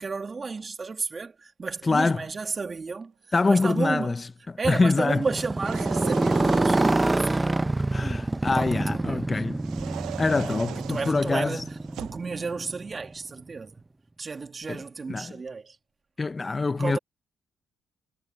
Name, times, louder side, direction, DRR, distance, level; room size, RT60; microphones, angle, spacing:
voice 1, 0.0-3.1 3.5-4.1 4.6-7.7 8.5-9.5 10.5-13.8 14.2-15.8 16.8-17.0, right 4 dB, 35° right, 2.2 m, -33 dB
voice 2, 1.9-2.2 3.3-4.2 4.7-5.2 7.9-9.6 10.2-11.6 14.7-14.8 15.1-15.3 16.2-17.0, left 3 dB, 25° left, 0.6 m, -24 dB
Motorcycle, 5.1-13.1, right 2 dB, 15° right, 0.7 m, -27 dB
sound 1, 5.5-7.4 9.6-12.3, right 12 dB, 80° right, 0.5 m, -39 dB
cardioid pair, 90°, 0 cm